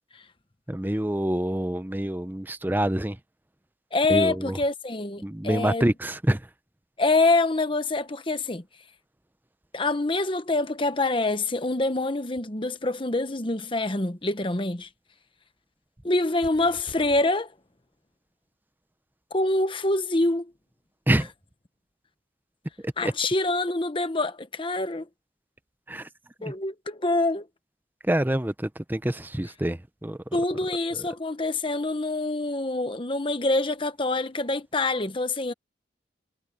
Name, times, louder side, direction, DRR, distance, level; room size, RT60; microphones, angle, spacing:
voice 1, 0.7-3.2 4.1-4.6 5.2-6.5 21.1-21.3 22.8-23.1 25.9-26.1 26.4-26.5 28.0-30.2 30.9-31.1, right 1 dB, 10° right, 0.7 m, -26 dB
voice 2, 3.9-5.8 7.0-8.6 9.7-14.9 16.0-17.5 19.3-20.5 23.0-25.1 26.4-27.5 30.3-35.5, left 2 dB, 30° left, 1.1 m, -25 dB
sound 1, 16.4-17.2, left 1 dB, 60° left, 4.8 m, -45 dB
head